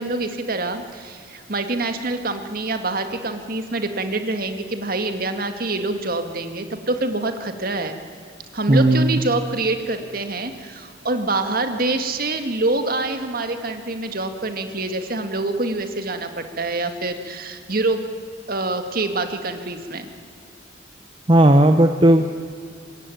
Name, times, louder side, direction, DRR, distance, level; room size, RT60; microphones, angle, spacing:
voice 1, 0.0-8.0 8.5-18.1 18.5-20.1, right 2 dB, 50° right, 7 dB, 2.0 m, -26 dB
voice 2, 8.7-9.2 21.3-22.3, right 1 dB, 25° right, 7 dB, 0.9 m, -14 dB
25.5 x 20.5 x 9.3 m, 2.2 s
head